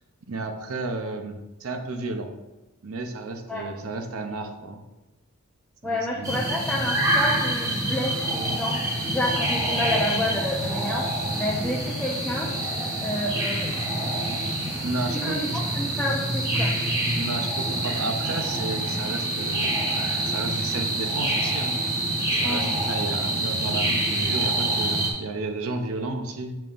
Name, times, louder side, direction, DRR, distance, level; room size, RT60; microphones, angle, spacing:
voice 1, 0.3-2.3 2.8-4.8 5.8-6.4 14.8-15.6 17.1-19.7 20.2-21.8 22.3-26.6, right 2 dB, 75° right, 5 dB, 0.6 m, -32 dB
voice 2, 5.8-8.8 9.1-11.0 11.4-12.5 13.0-13.7 14.0-14.2 14.6-14.7 15.1-16.7 22.4-22.7, left 1 dB, 5° left, -5 dB, 0.6 m, -29 dB
sound 1, 6.2-25.1, right 1 dB, 15° right, 1.0 m, -26 dB
6.8 x 5.7 x 2.5 m, 1.1 s
head